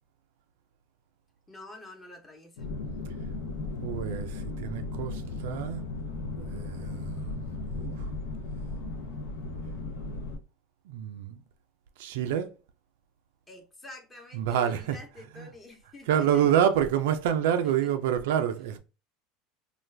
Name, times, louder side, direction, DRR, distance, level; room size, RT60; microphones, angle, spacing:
voice 1, 1.5-2.7 13.5-16.5 17.6-18.1, left 2 dB, 20° left, 0.9 m, -48 dB
sound 1, 2.6-10.4, left 3 dB, 80° left, 0.7 m, -36 dB
voice 2, 3.8-5.9 6.4-8.1 10.9-11.4 12.0-12.6 14.3-15.0 15.4-15.5 16.1-18.8, right 9 dB, 75° right, 0.3 m, -28 dB
2.4 x 2.3 x 3.2 m
hypercardioid pair, 95°, 0 cm